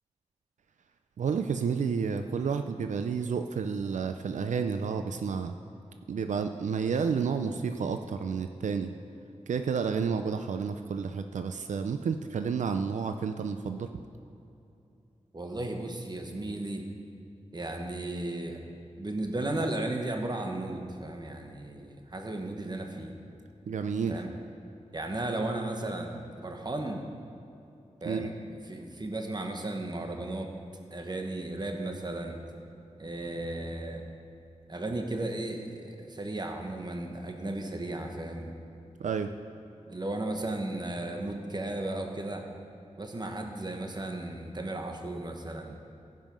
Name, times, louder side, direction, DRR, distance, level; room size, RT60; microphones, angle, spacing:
voice 1, 1.2-5.5 6.1-8.9 9.5-13.9 23.7-24.2 28.1-28.3 39.0-39.3, right 6 dB, 90° right, 8 dB, 0.4 m, -30 dB
voice 2, 15.3-16.8 17.5-18.6 19.0-23.1 24.1-24.3 24.9-27.0 28.0-30.5 30.9-32.4 33.0-34.0 34.7-38.5 39.9-42.4 43.0-45.8, right 2 dB, 35° right, 3 dB, 1.3 m, -35 dB
15.5 x 5.5 x 5.3 m, 2.8 s
wide cardioid pair, 70°, 12 cm